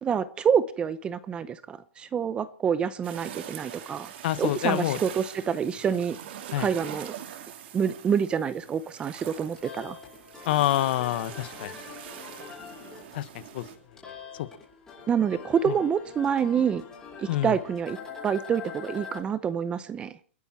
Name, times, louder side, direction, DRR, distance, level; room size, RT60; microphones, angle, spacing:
voice 1, 0.0-4.1 4.4-6.2 6.6-7.2 7.7-10.0 15.1-16.8 17.2-18.0 18.2-20.1, right 7 dB, 15° right, 16 dB, 0.7 m, -27 dB
sound 1, 3.0-13.8, right 10 dB, 55° right, 3.2 m, -43 dB
voice 2, 4.2-5.0 6.5-6.7 10.4-11.7 13.1-13.6 14.4-14.5 15.7-15.8 17.3-17.5, left 14 dB, 55° left, 14 dB, 1.4 m, -27 dB
sound 2, 9.4-19.2, left 6 dB, 10° left, 7.4 m, -44 dB
30.0 x 10.5 x 4.4 m, 0.41 s
supercardioid pair, 160°, 7 cm